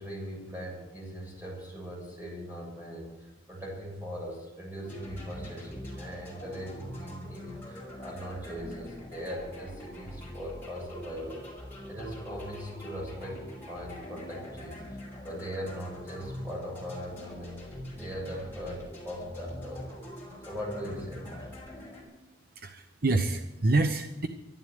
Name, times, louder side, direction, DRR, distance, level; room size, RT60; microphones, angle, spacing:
voice 1, 0.0-11.4 11.9-13.4 13.7-15.0 15.2-17.6 18.0-19.9 20.5-21.5, equal, 10° right, -3 dB, 7.0 m, -40 dB
sound 1, 4.8-22.0, left 1 dB, 10° left, 5.5 m, -43 dB
voice 2, 22.6-24.3, right 2 dB, 50° right, 6 dB, 0.8 m, -27 dB
13.0 x 12.0 x 8.0 m, 1.1 s
head